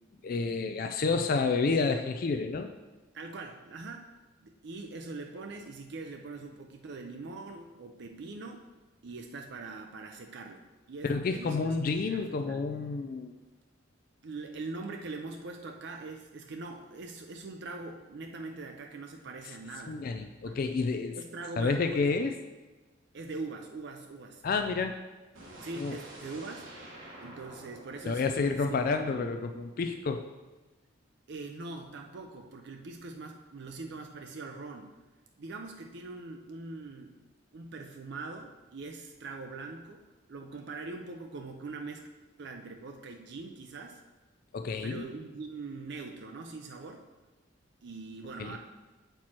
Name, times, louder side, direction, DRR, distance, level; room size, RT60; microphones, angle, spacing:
voice 1, 0.2-2.7 11.0-13.3 19.9-21.2 21.6-22.4 24.4-25.0 25.8-26.0 28.0-30.3 44.5-45.1 48.4-48.6, left 4 dB, 45° left, 6 dB, 0.3 m, -29 dB
voice 2, 3.1-4.1 4.4-8.6 9.0-10.6 10.9-11.8 12.0-12.7 14.2-20.0 20.4-20.6 21.2-22.3 23.1-24.4 25.6-26.7 27.2-29.3 31.3-34.9 35.4-37.1 37.5-40.0 40.3-42.1 42.4-44.0 44.8-47.0 47.8-48.6, right 3 dB, 60° right, 3 dB, 0.5 m, -42 dB
sound 1, 25.3-29.3, right 1 dB, 75° right, 1.3 m, -49 dB
7.4 x 4.5 x 4.3 m, 1.2 s
head